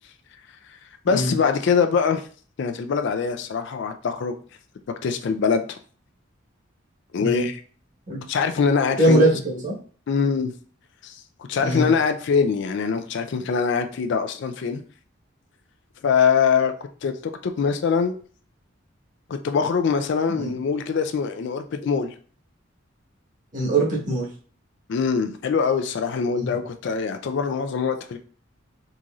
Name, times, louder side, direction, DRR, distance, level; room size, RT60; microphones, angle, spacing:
voice 1, 1.0-2.2 2.6-4.3 5.0-5.6 7.1-7.6 8.3-9.2 10.1-10.5 11.0-11.2 11.5-14.8 16.0-16.7 17.0-18.2 19.3-22.1 24.9-28.2, left 6 dB, 60° left, 0.4 m, -23 dB
voice 2, 9.0-9.8 11.6-11.9 20.3-20.5 23.5-24.3 26.4-26.6, right 1 dB, 40° right, 1.3 m, -21 dB
3.8 x 2.9 x 2.4 m
head